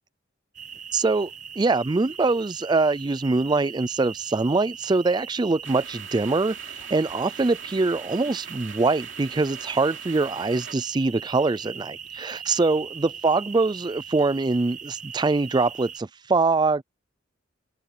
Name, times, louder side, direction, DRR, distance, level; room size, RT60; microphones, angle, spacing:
sound 1, 0.5-16.0, right 8 dB, 40° right, 0.9 m, -40 dB
voice 1, 0.9-1.3 1.6-16.8, right 3 dB, 20° right, 0.4 m, -23 dB
sound 2, 5.6-10.7, right 7 dB, 65° right, 3.0 m, -43 dB
head